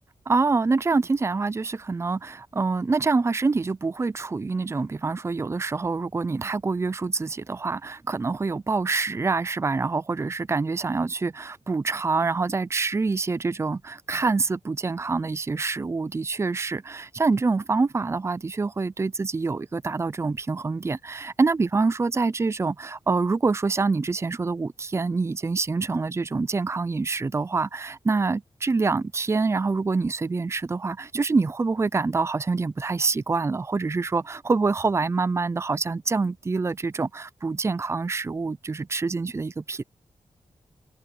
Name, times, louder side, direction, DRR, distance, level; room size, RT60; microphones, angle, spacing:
voice 1, 0.3-39.8, right 4 dB, 25° right, 0.5 m, -26 dB
wide cardioid pair, 100°, 12 cm